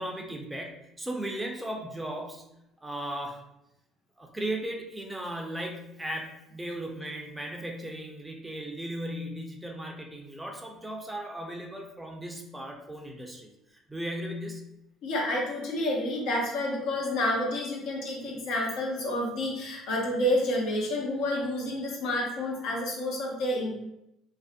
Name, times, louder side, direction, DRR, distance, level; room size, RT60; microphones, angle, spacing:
voice 1, 0.0-2.5 2.8-3.4 4.2-14.6, right 1 dB, 15° right, 1 dB, 0.5 m, -36 dB
voice 2, 15.0-23.7, left 1 dB, 65° left, -2 dB, 0.7 m, -29 dB
2.6 x 2.0 x 2.4 m, 0.86 s
hypercardioid pair, 65°, 0 cm